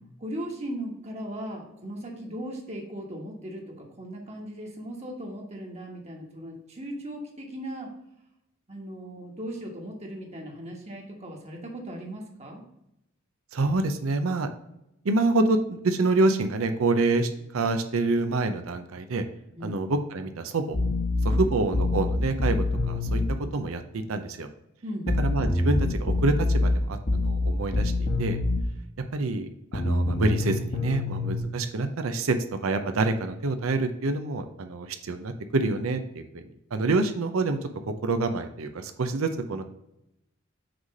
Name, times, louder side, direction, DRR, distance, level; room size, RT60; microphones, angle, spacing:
voice 1, 0.2-7.9 8.7-12.6 19.5-19.8 21.3-21.5 24.8-25.2, right 1 dB, 30° right, 0 dB, 1.3 m, -38 dB
voice 2, 13.5-14.5 15.0-19.2 19.6-20.8 21.2-22.6 22.9-23.2 23.5-24.5 25.2-28.4 29.1-32.4 32.6-36.4 36.7-37.7 38.0-39.6, right 3 dB, 85° right, 8 dB, 0.6 m, -27 dB
sound 1, 20.7-23.3 25.1-28.7 29.7-31.4, left 2 dB, 40° left, 1.0 m, -25 dB
6.0 x 3.2 x 5.2 m, 0.84 s
head